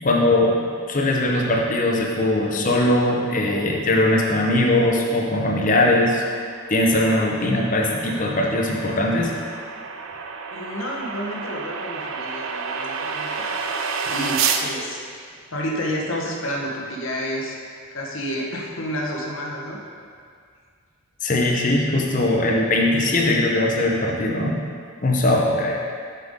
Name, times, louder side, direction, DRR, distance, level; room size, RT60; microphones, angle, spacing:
voice 1, 0.0-6.2 6.7-9.4 21.2-24.6 25.0-25.8, left 1 dB, 35° left, -1 dB, 0.8 m, -20 dB
sound 1, 6.2-14.7, right 5 dB, 60° right, 0.5 m, -30 dB
voice 2, 10.5-13.7 14.0-15.0 15.5-17.6 17.9-19.8 23.2-23.4, equal, 60° left, -1 dB, 1.1 m, -30 dB
7.6 x 6.9 x 3.6 m, 2.1 s
head